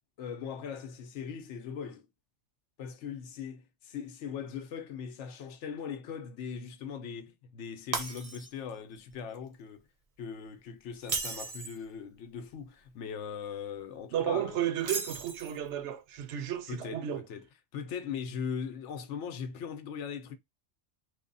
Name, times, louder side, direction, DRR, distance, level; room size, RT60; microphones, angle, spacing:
voice 1, 0.2-2.1 2.8-9.9 10.2-14.7 16.7-20.4, left 7 dB, 85° left, 1.0 m, -40 dB
Shatter, 7.9-8.7 9.1-9.4 11.0-11.8 14.8-15.7, right 4 dB, 40° right, 0.6 m, -36 dB
voice 2, 14.1-17.2, right 10 dB, 80° right, 0.9 m, -33 dB
3.2 x 2.1 x 3.9 m
omnidirectional pair, 1.2 m